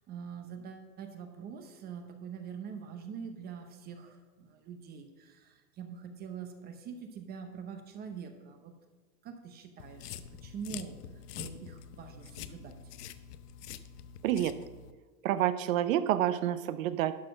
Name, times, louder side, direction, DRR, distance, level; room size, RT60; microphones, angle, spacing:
voice 1, 0.1-8.7 9.2-10.9 11.4-12.8, right 6 dB, 20° right, 7 dB, 0.6 m, -44 dB
sound 1, 9.8-14.9, left 9 dB, 75° left, 0.7 m, -46 dB
voice 2, 14.2-14.6 15.2-17.2, right 12 dB, 60° right, 13 dB, 0.6 m, -28 dB
11.5 x 4.3 x 6.1 m, 1.3 s
supercardioid pair, 140°, 48 cm